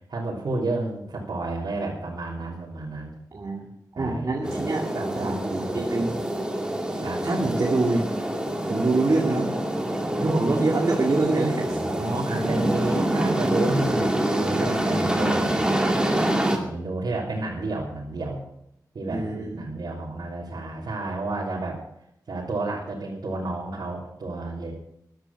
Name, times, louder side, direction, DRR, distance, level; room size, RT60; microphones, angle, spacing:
voice 1, 0.1-3.1 3.9-6.2 7.0-7.2 11.6-15.7 16.6-18.4 18.9-19.2 19.5-21.8 22.3-24.7, right 2 dB, 75° right, -6 dB, 3.4 m, -31 dB
voice 2, 3.3-3.7 4.0-6.1 7.2-8.1 8.6-9.5 10.2-11.8 19.1-19.6, right 2 dB, 50° right, -1 dB, 2.2 m, -25 dB
sound 1, 4.4-16.6, right 1 dB, 10° right, 2.4 m, -26 dB
14.5 x 11.5 x 6.0 m, 0.78 s
wide cardioid pair, 100°, 7 cm